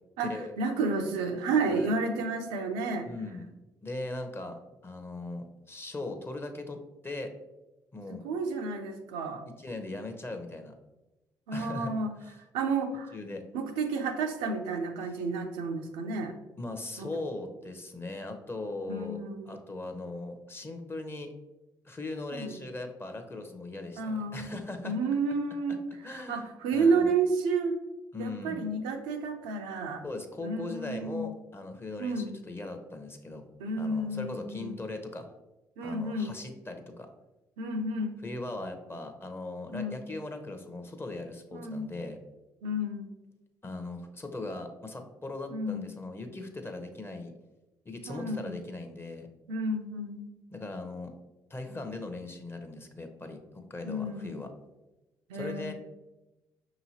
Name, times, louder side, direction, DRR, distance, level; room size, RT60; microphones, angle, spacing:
voice 1, 0.2-3.1 8.1-9.4 11.5-12.1 12.5-13.1 13.5-16.3 17.0-17.1 18.9-19.5 22.3-22.5 24.0-24.5 24.8-27.8 28.2-30.0 30.4-31.3 32.0-32.4 33.6-34.8 35.8-36.4 37.6-38.2 39.7-40.0 41.5-41.9 42.6-43.1 45.5-45.9 48.1-48.6 49.5-50.4 53.8-54.5 55.3-55.7, right 3 dB, 80° right, 4 dB, 0.5 m, -31 dB
voice 2, 3.0-3.5 3.8-6.8 7.0-7.3 7.9-8.2 9.6-10.7 11.5-11.9 12.2-12.3 13.1-13.4 16.6-19.2 19.5-21.3 21.8-25.0 26.0-26.5 26.7-27.1 28.1-28.6 30.0-33.4 33.8-35.3 35.8-37.1 38.2-42.2 43.6-47.3 47.8-49.3 50.5-51.1 51.5-54.5 55.3-55.7, left 2 dB, 25° left, 6 dB, 0.7 m, -39 dB
5.4 x 2.9 x 2.8 m, 1.0 s
hypercardioid pair, 50°, 10 cm